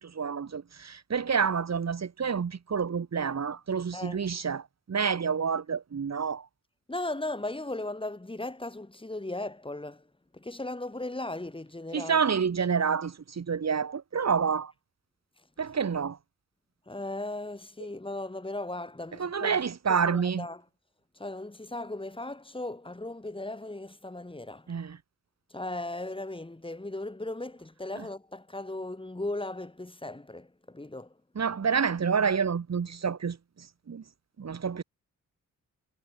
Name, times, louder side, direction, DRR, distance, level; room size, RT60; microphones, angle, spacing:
voice 1, 0.0-4.6 4.9-6.4 11.9-14.7 15.6-16.2 19.2-20.5 24.7-25.0 28.0-28.1 31.4-33.4 33.9-34.0 34.4-34.8, right 6 dB, 55° right, 4.1 m, -28 dB
voice 2, 6.9-10.0 10.3-12.2 16.9-19.6 19.9-20.6 21.2-24.6 25.5-31.1, left 2 dB, 15° left, 7.0 m, -37 dB
cardioid pair, 95°, 32 cm